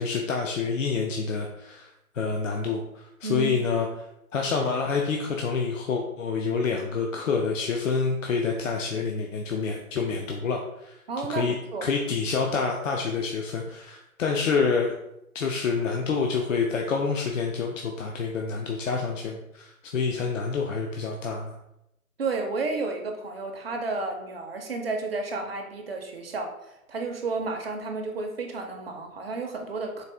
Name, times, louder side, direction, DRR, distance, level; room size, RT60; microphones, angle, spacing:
voice 1, 0.0-1.9 2.1-3.9 4.3-10.9 11.3-11.5 11.8-14.9 15.3-21.5, left 5 dB, 60° left, 1 dB, 0.6 m, -27 dB
voice 2, 3.2-3.6 11.1-11.9 22.2-30.0, right 3 dB, 45° right, 3 dB, 0.5 m, -32 dB
4.1 x 2.4 x 3.3 m, 0.84 s
figure-of-eight pair, 135°, 43 cm